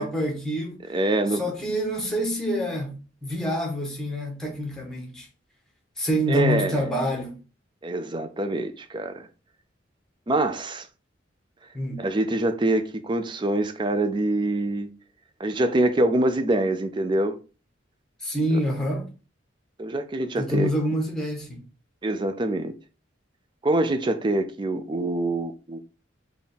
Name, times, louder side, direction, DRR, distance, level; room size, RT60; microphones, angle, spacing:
voice 1, 0.0-0.8 1.3-5.3 6.0-7.3 11.7-12.1 18.2-19.1 20.4-21.6, equal, 5° left, 0.9 m, -27 dB
voice 2, 0.9-1.4 6.3-6.8 7.8-9.3 10.3-10.9 12.0-14.9 15.4-17.4 19.8-20.7 22.0-22.7 23.6-25.8, right 2 dB, 25° right, 0.4 m, -25 dB
3.4 x 2.4 x 4.2 m
head